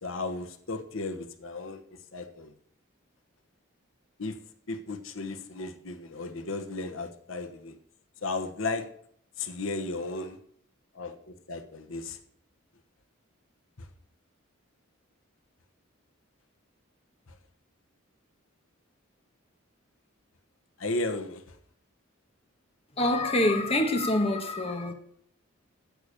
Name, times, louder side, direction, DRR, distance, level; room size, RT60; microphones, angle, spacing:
voice 1, 0.0-1.8 2.1-2.5 4.2-4.4 4.7-7.7 8.2-8.9 9.4-10.4 10.9-12.2 13.8-13.9 20.8-21.4, left 3 dB, 80° left, 1.2 m, -34 dB
voice 2, 23.0-24.9, left 1 dB, 30° left, 1.4 m, -25 dB
9.4 x 8.5 x 6.7 m
head